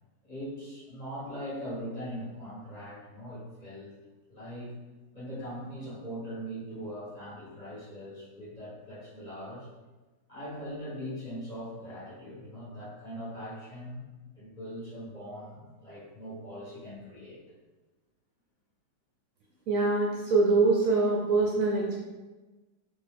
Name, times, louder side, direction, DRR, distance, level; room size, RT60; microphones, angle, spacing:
voice 1, 0.2-3.9 4.3-4.8 5.1-9.7 10.3-14.1 14.3-17.4, equal, 25° left, -10 dB, 1.6 m, -41 dB
voice 2, 19.7-22.0, right 3 dB, 65° right, -3 dB, 1.0 m, -24 dB
4.5 x 3.0 x 3.4 m, 1.2 s
omnidirectional pair, 1.7 m